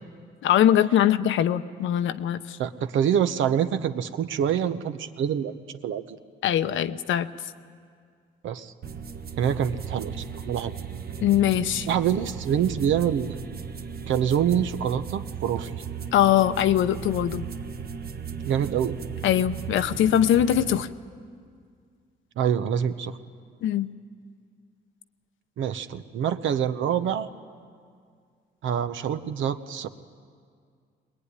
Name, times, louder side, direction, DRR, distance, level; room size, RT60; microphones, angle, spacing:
voice 1, 0.4-2.6 6.4-7.3 11.2-11.9 16.1-17.5 19.2-20.9 23.6-23.9, left 11 dB, 80° left, 11 dB, 0.9 m, -22 dB
voice 2, 2.6-6.2 8.4-8.7 9.4-10.7 11.9-13.4 14.1-15.7 18.5-19.0 22.4-23.2 25.6-27.3 28.6-29.9, right 8 dB, 80° right, 10 dB, 1.0 m, -26 dB
sound 1, 8.8-20.8, right 7 dB, 50° right, 1.2 m, -36 dB
21.5 x 20.5 x 9.9 m, 2.1 s
cardioid pair, 90°, 20 cm